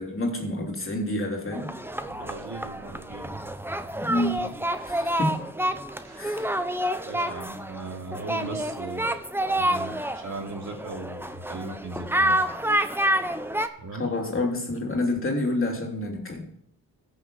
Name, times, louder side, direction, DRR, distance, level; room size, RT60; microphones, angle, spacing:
voice 1, 0.0-1.7 4.0-4.4 4.9-5.3 6.2-6.5 14.0-16.4, left 2 dB, 35° left, 0 dB, 3.1 m, -28 dB
sound 1, 1.5-13.7, right 1 dB, 5° right, 0.8 m, -28 dB
voice 2, 2.1-3.4 3.9-4.5 6.0-6.4 7.0-9.2 9.5-12.4 13.8-14.1, right 3 dB, 45° right, 1 dB, 2.8 m, -38 dB
14.0 x 6.6 x 5.4 m, 0.69 s
cardioid pair, 65°, 38 cm